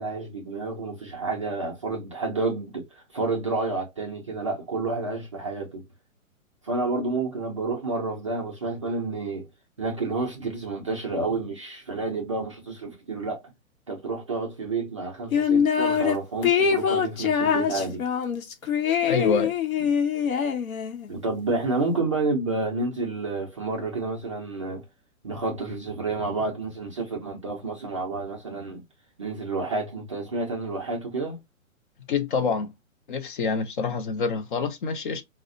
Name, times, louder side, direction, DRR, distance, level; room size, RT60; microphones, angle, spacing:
voice 1, 0.0-5.8 6.6-9.5 9.8-13.4 13.9-18.1 21.1-24.8 25.2-28.8 29.2-31.4, right 3 dB, 25° right, 0.3 m, -30 dB
sound 1, 15.3-16.1 16.4-21.1, left 7 dB, 80° left, 0.9 m, -24 dB
voice 2, 19.0-19.5 32.1-32.7 33.1-35.2, left 5 dB, 40° left, 0.5 m, -26 dB
3.7 x 2.1 x 2.4 m
hypercardioid pair, 140°, 41 cm